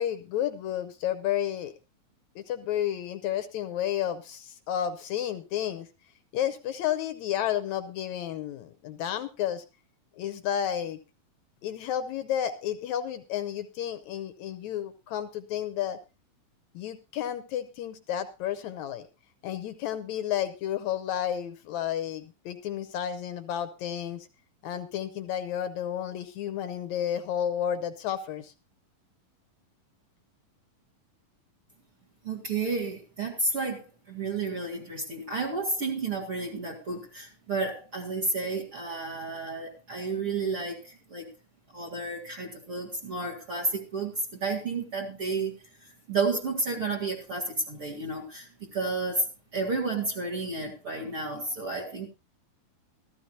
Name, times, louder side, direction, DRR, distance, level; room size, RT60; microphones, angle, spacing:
voice 1, 0.0-1.7 2.3-5.9 6.3-9.6 10.2-11.0 11.6-16.0 16.7-19.1 19.4-24.3 24.6-28.5, left 10 dB, 75° left, 11 dB, 1.7 m, -31 dB
voice 2, 32.2-41.3 41.7-52.1, right 3 dB, 40° right, -1 dB, 2.6 m, -31 dB
14.5 x 14.5 x 2.7 m, 0.29 s
omnidirectional pair, 4.1 m